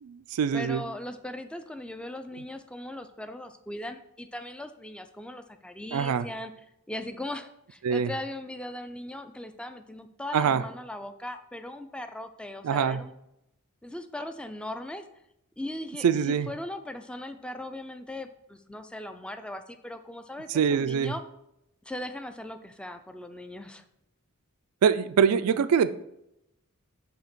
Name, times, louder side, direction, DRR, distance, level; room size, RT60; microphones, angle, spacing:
voice 1, 0.0-0.8 5.9-6.3 7.8-8.1 10.3-10.6 12.6-13.0 16.0-16.5 20.5-21.1 24.8-25.9, right 7 dB, 85° right, 13 dB, 0.4 m, -24 dB
voice 2, 0.5-6.5 6.9-13.1 13.8-15.1 15.6-21.2 21.9-23.8, left 1 dB, 5° left, 8 dB, 0.4 m, -39 dB
6.9 x 2.9 x 5.9 m, 0.80 s
head